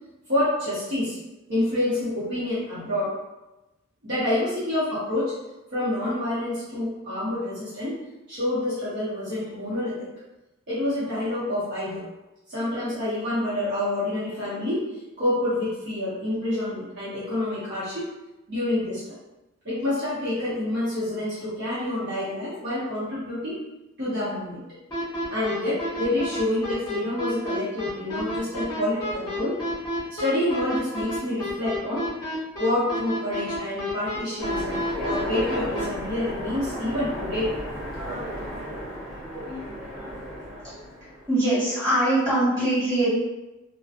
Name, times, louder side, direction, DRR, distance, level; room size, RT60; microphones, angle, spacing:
voice 1, 0.3-1.2 1.5-3.2 4.0-5.4 5.7-8.0 8.3-10.1 10.7-12.1 12.5-18.1 18.5-19.1 19.6-23.6 24.0-24.6 25.3-29.6 30.1-32.1 32.6-37.6, left 1 dB, 50° right, -11 dB, 0.9 m, -27 dB
sound 1, 24.9-35.8, equal, 20° left, 0.9 m, -30 dB
Train, 34.4-41.3, equal, ahead, 0.5 m, -34 dB
voice 2, 41.3-43.1, right 1 dB, 15° right, -13 dB, 1.5 m, -22 dB
2.7 x 2.2 x 2.5 m, 1.0 s
head